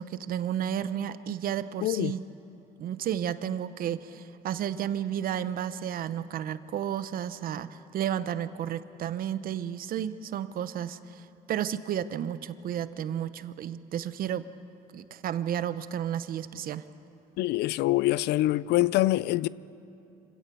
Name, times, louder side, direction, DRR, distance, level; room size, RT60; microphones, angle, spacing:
voice 1, 0.0-2.3 2.8-14.5 14.9-16.9, right 10 dB, 60° right, 0.8 m, -32 dB
voice 2, 1.8-2.1 17.4-19.5, left 16 dB, 80° left, 0.4 m, -25 dB
26.0 x 17.0 x 6.9 m
cardioid pair, 110°, 17 cm